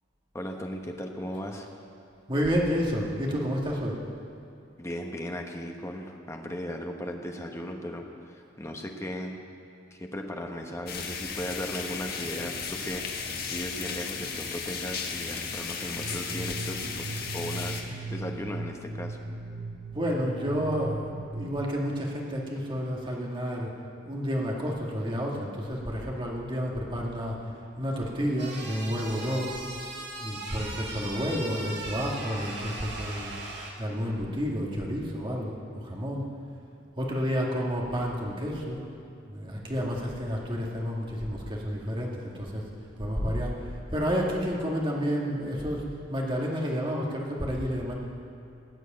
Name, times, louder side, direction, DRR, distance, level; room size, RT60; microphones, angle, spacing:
voice 1, 0.3-1.7 4.8-9.4 9.9-19.2, equal, 15° left, 2 dB, 1.2 m, -37 dB
voice 2, 2.3-4.0 19.9-23.7 24.0-29.6 30.2-33.3 33.8-36.2 37.0-38.9 39.3-42.7 43.0-47.9, equal, 25° right, -2 dB, 2.1 m, -30 dB
sound 1, 10.9-17.8, left 5 dB, 50° left, 1.5 m, -35 dB
sound 2, 16.0-21.7, right 2 dB, 85° right, 1.0 m, -38 dB
sound 3, 28.4-33.7, right 2 dB, 60° right, 2.3 m, -38 dB
18.5 x 6.5 x 9.1 m, 2.5 s
head